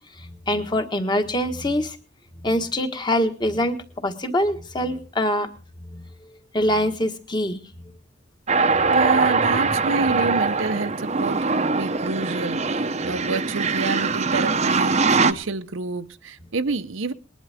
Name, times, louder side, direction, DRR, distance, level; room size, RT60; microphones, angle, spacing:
voice 1, 0.2-2.0 2.4-3.8 4.0-5.5 5.9-6.0 6.3-7.6 9.4-9.6, left 1 dB, 20° left, 1.5 m, -24 dB
sound 1, 8.5-15.3, right 4 dB, 35° right, 0.8 m, -22 dB
voice 2, 8.9-17.1, right 3 dB, 75° right, 0.9 m, -28 dB
20.5 x 11.0 x 3.5 m
head